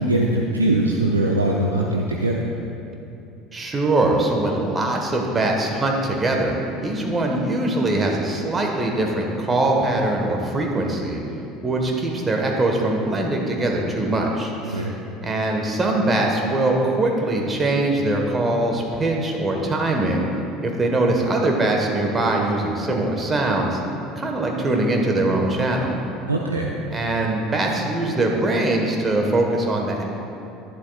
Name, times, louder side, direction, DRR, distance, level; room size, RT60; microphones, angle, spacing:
voice 1, 0.0-2.5 14.7-14.9 26.3-26.7, right 1 dB, 85° right, -1 dB, 0.5 m, -21 dB
voice 2, 3.5-11.2 11.6-14.9 15.2-20.3 20.6-23.8 24.2-26.0 26.9-30.0, right 2 dB, 25° right, 1 dB, 1.3 m, -22 dB
11.0 x 10.5 x 2.4 m, 2.7 s
figure-of-eight pair, 65°, 0 cm